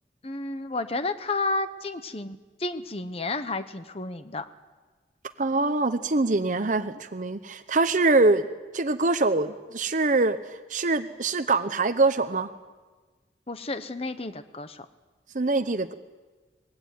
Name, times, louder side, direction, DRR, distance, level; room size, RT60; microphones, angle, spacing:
voice 1, 0.2-4.4 13.5-14.9, left 2 dB, 35° left, 10 dB, 1.0 m, -31 dB
voice 2, 5.4-8.5 8.7-10.4 10.7-12.5 15.3-15.9, right 3 dB, 45° right, 10 dB, 0.9 m, -24 dB
24.5 x 21.0 x 9.5 m, 1.3 s
head